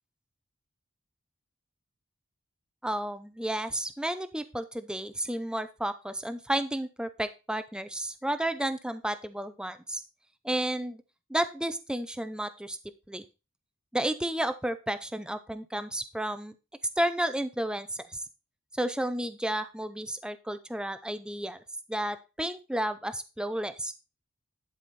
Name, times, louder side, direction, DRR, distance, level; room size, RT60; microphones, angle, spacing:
voice 1, 2.8-10.0 10.4-11.0 11.3-12.8 13.1-13.2 13.9-16.5 17.0-18.2 18.7-21.6 21.9-23.9, right 1 dB, 5° right, 11 dB, 0.5 m, -32 dB
11.0 x 5.0 x 4.0 m, 0.28 s
head